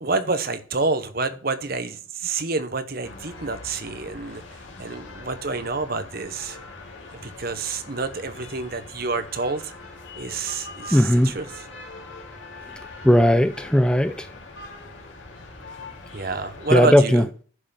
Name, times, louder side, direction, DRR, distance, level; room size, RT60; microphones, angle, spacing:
voice 1, 0.0-4.4 4.8-6.6 7.2-9.7 10.2-11.7 16.1-17.3, right 3 dB, 45° right, 0.9 m, -28 dB
sound 1, 3.0-16.8, left 3 dB, 65° left, 2.8 m, -42 dB
voice 2, 10.9-11.3 13.0-14.3 16.7-17.2, equal, 5° left, 0.4 m, -17 dB
11.0 x 5.6 x 5.6 m
head